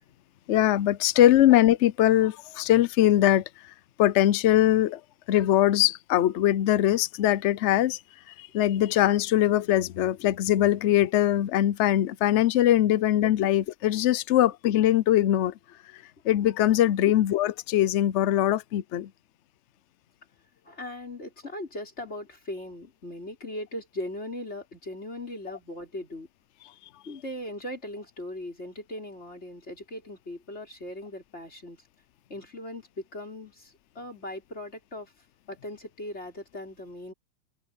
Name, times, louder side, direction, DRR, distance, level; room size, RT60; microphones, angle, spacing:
voice 1, 0.5-3.4 4.0-5.0 5.3-8.0 8.4-15.5 16.2-19.1, left 12 dB, 90° left, 0.6 m, -22 dB
voice 2, 20.6-26.3 27.1-31.8 32.3-35.1 35.5-37.1, left 1 dB, 35° left, 5.8 m, -39 dB
omnidirectional pair, 2.0 m